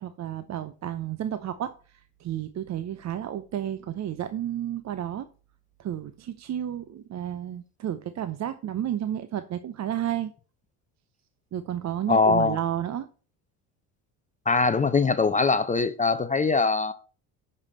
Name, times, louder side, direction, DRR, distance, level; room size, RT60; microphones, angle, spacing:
voice 1, 0.0-5.3 5.8-10.3 11.5-13.1, right 11 dB, 40° right, 0.7 m, -32 dB
voice 2, 12.1-12.6 14.5-16.9, left 4 dB, 20° left, 0.6 m, -22 dB
10.5 x 5.4 x 4.2 m
supercardioid pair, 85°, 42 cm